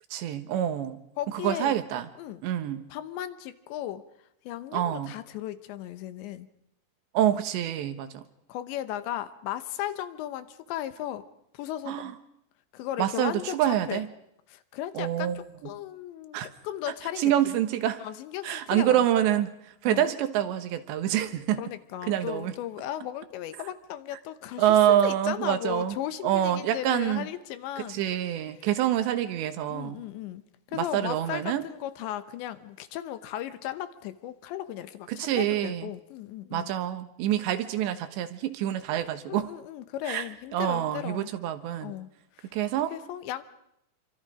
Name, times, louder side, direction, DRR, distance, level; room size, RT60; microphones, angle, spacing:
voice 1, 0.1-1.0 1.3-2.1 2.4-2.8 4.7-5.1 7.2-8.2 11.9-12.1 13.0-14.1 15.0-15.4 16.3-16.5 17.2-18.0 18.4-19.5 19.8-21.6 22.1-22.5 24.6-26.0 26.2-27.3 27.9-30.0 30.7-31.7 35.1-35.9 36.5-39.5 40.1-40.2 40.5-41.9 42.5-42.9, right 11 dB, 80° right, 10 dB, 3.4 m, -26 dB
voice 2, 1.2-1.8 2.2-2.4 2.9-4.0 4.4-6.5 8.5-11.3 11.5-12.1 12.7-14.0 14.5-17.5 18.0-19.0 19.9-20.1 21.6-28.0 28.3-28.5 29.7-30.4 30.7-36.7 39.3-41.3 41.8-42.5 42.9-43.4, left 12 dB, 80° left, 11 dB, 3.3 m, -36 dB
27.5 x 25.0 x 5.1 m, 0.79 s
omnidirectional pair, 5.2 m